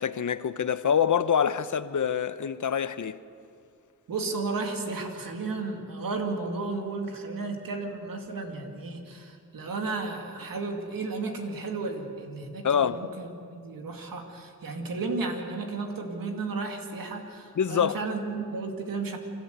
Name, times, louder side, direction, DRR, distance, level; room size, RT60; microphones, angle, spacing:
voice 1, 0.0-3.2 12.6-13.0 17.6-18.0, left 8 dB, 65° left, 0.8 m, -25 dB
voice 2, 4.1-19.2, right 3 dB, 90° right, 2.4 m, -33 dB
28.0 x 13.0 x 8.2 m
cardioid pair, 45°, 33 cm